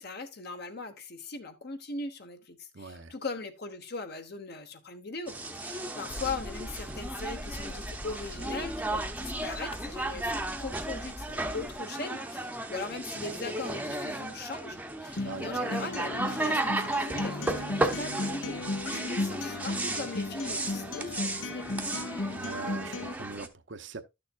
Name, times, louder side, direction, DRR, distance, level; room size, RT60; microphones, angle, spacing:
voice 1, 0.0-21.9, left 3 dB, 55° left, 1.2 m, -40 dB
voice 2, 2.7-3.1 15.2-15.5 22.3-24.0, right 3 dB, 70° right, 0.8 m, -42 dB
sound 1, 5.3-23.5, right 2 dB, 10° right, 0.7 m, -34 dB
sound 2, 6.1-11.7, left 1 dB, 30° left, 0.8 m, -43 dB
Acoustic guitar, 15.2-23.2, left 2 dB, 80° left, 1.0 m, -36 dB
12.5 x 6.7 x 2.4 m
head